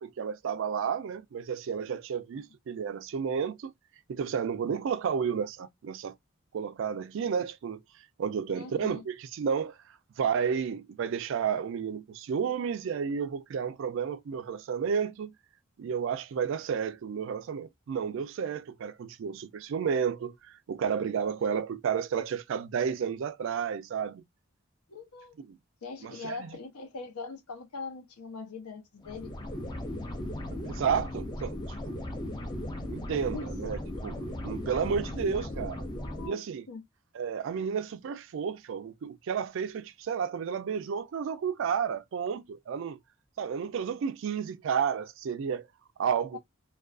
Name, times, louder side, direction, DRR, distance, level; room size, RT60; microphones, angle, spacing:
voice 1, 0.0-3.7 4.1-6.1 6.5-7.8 8.2-9.8 10.2-15.3 15.8-24.2 25.5-25.6 26.0-26.4 30.6-31.6 31.9-32.0 32.9-35.8 36.3-36.6 37.1-43.0 43.4-45.7 46.0-46.4, right 7 dB, 60° right, 0.3 m, -31 dB
voice 2, 8.5-9.0 24.9-25.4 25.8-29.3 33.1-33.5 36.0-36.4 36.7-36.8 46.3-46.4, left 4 dB, 90° left, 0.7 m, -42 dB
sound 1, 29.0-36.3, left 1 dB, 20° left, 0.4 m, -37 dB
2.4 x 2.3 x 2.3 m
head